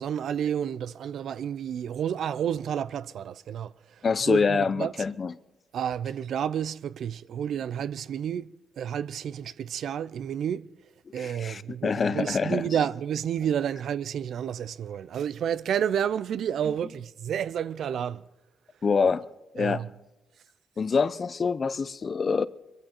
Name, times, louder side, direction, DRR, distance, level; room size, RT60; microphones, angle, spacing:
voice 1, 0.0-3.7 4.3-4.9 5.7-10.7 11.1-18.2 19.6-19.9, right 9 dB, 70° right, 0.5 m, -30 dB
voice 2, 4.0-5.3 11.1-12.6 18.8-19.2 19.5-19.8 20.8-22.5, left 5 dB, 40° left, 0.6 m, -25 dB
22.5 x 13.0 x 4.5 m
cardioid pair, 85°, 0 cm